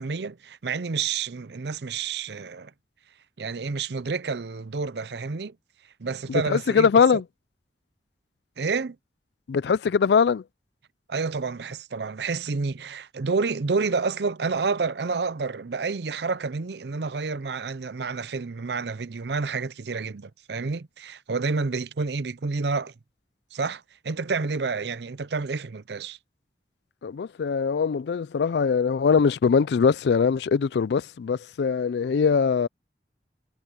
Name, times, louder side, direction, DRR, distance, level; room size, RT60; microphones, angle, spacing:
voice 1, 0.0-2.7 3.4-5.6 6.0-7.2 8.6-9.0 11.1-22.9 23.5-26.2, right 4 dB, 75° right, 0.6 m, -29 dB
voice 2, 6.3-7.2 9.5-10.4 27.0-32.7, left 6 dB, 75° left, 0.4 m, -22 dB
head